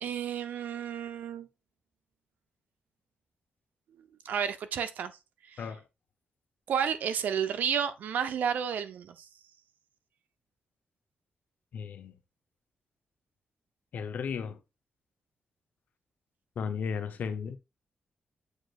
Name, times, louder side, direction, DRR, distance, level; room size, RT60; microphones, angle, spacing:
voice 1, 0.0-1.5 4.2-5.1 5.5-5.7 6.7-9.3, right 8 dB, 85° right, 0.8 m, -31 dB
voice 2, 11.7-12.1 13.9-14.6 16.6-17.6, left 6 dB, 75° left, 0.9 m, -34 dB
7.8 x 4.9 x 2.5 m
cardioid pair, 100°, 3 cm